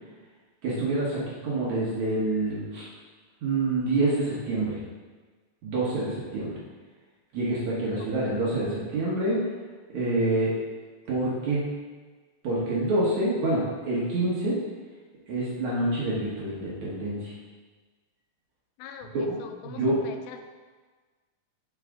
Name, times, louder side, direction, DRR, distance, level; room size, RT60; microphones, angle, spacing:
voice 1, 0.6-2.9 3.4-4.8 5.6-6.5 7.3-9.4 9.9-10.5 11.1-11.7 12.4-14.6 15.3-17.3 19.0-19.4 19.6-20.0, right 2 dB, 60° right, -7 dB, 2.3 m, -27 dB
voice 2, 8.0-8.5 18.8-20.4, left 8 dB, 85° left, 6 dB, 2.5 m, -44 dB
10.5 x 4.9 x 3.7 m, 1.4 s
omnidirectional pair, 4.2 m